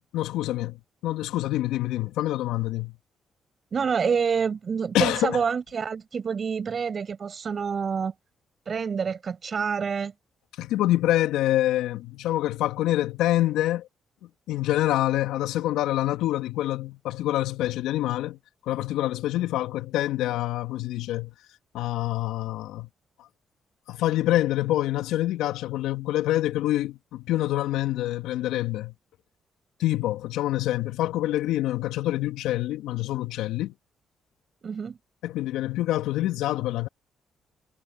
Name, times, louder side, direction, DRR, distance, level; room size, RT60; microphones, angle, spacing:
voice 1, 0.1-3.0 4.9-5.4 10.6-13.9 14.5-21.3 21.7-22.9 23.9-28.9 29.8-33.7 35.2-36.9, left 15 dB, 75° left, 2.1 m, -26 dB
voice 2, 3.7-8.1 8.7-10.1 34.6-35.0, right 6 dB, 50° right, 6.3 m, -27 dB
hypercardioid pair, 50°, 0 cm